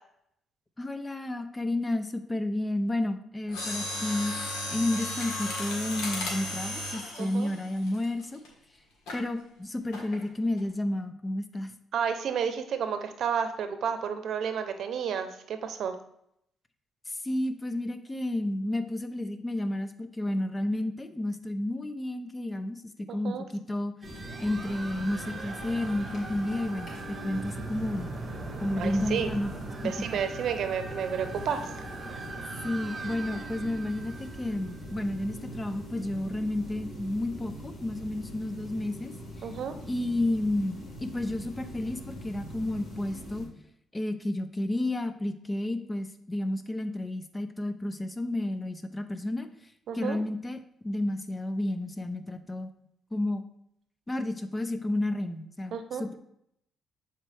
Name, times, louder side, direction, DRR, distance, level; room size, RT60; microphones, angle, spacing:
voice 1, 0.8-8.4 9.1-11.7 17.1-22.8 23.1-24.0 24.4-28.1 28.6-29.5 29.8-29.9 32.6-39.1 39.4-39.5 39.9-43.5 43.9-49.5 49.9-50.6 50.8-52.7 53.1-53.4 54.1-56.2, left 1 dB, 20° left, 10 dB, 0.6 m, -31 dB
Mechanisms, 3.5-8.5 9.1-9.3 9.9-10.2 10.6-10.7, left 1 dB, 90° left, 1.6 m, -35 dB
voice 2, 7.2-7.5 11.9-16.0 23.1-23.4 28.8-29.3 29.8-31.7 39.4-39.8 49.9-50.2 55.7-56.0, right 7 dB, 65° right, 8 dB, 0.7 m, -31 dB
sound 1, 24.0-43.5, right 1 dB, 55° left, 2.5 m, -42 dB
sound 2, 24.0-35.2, right 3 dB, 30° right, 1.1 m, -41 dB
7.3 x 4.4 x 3.4 m, 0.74 s
cardioid pair, 90°, 0 cm